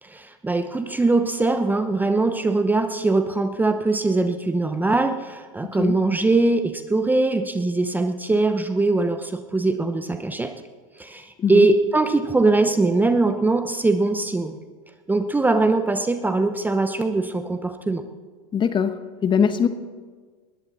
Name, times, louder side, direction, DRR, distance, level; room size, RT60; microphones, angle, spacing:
voice 1, 0.0-10.5 11.0-14.6 15.1-18.0, right 3 dB, 10° right, 9 dB, 0.8 m, -21 dB
voice 2, 5.6-5.9 11.4-11.7 18.5-18.9 19.2-19.7, left 7 dB, 25° left, 11 dB, 1.1 m, -21 dB
20.0 x 13.5 x 4.1 m, 1.5 s
hypercardioid pair, 100°, 19 cm